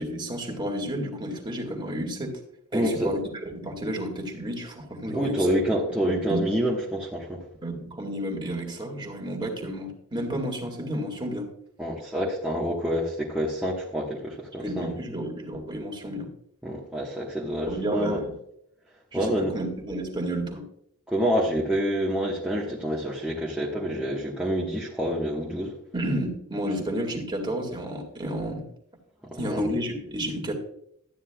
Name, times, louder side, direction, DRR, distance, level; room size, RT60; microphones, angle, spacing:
voice 1, 0.0-2.4 2.7-3.2 3.5-5.5 6.3-6.4 7.6-11.5 14.6-16.3 17.7-18.3 19.1-20.6 25.9-28.7 29.4-30.5, equal, 20° right, 1 dB, 2.0 m, -31 dB
voice 2, 2.7-3.1 5.1-7.4 11.8-14.9 16.6-18.2 19.1-19.5 21.1-25.7 29.3-29.7, equal, 5° right, -6 dB, 1.3 m, -27 dB
13.5 x 9.5 x 2.3 m, 0.72 s
head